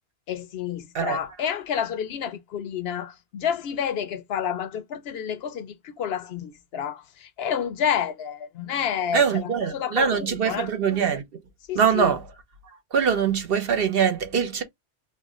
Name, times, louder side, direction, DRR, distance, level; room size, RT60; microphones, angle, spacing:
voice 1, 0.3-10.7 11.7-12.1, left 8 dB, 70° left, 0.8 m, -29 dB
voice 2, 9.1-11.2 11.7-12.2 12.9-14.6, right 7 dB, 60° right, 1.0 m, -23 dB
3.4 x 2.2 x 3.6 m
omnidirectional pair, 1.1 m